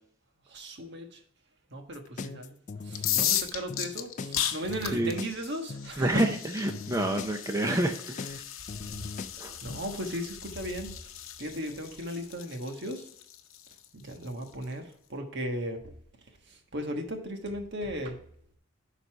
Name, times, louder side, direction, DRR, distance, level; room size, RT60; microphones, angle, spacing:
voice 1, 0.5-1.2 1.7-2.6 2.8-6.2 9.6-10.9 11.4-13.1 13.9-15.8 16.5-18.2, equal, 60° right, 4 dB, 1.3 m, -36 dB
sound 1, 1.9-9.8, left 4 dB, 40° left, 0.4 m, -39 dB
sound 2, 2.9-14.6, left 11 dB, 90° left, 0.7 m, -36 dB
voice 2, 6.0-8.4 9.4-9.6, right 1 dB, 15° right, 4 dB, 0.6 m, -28 dB
10.5 x 4.1 x 4.5 m, 0.65 s
head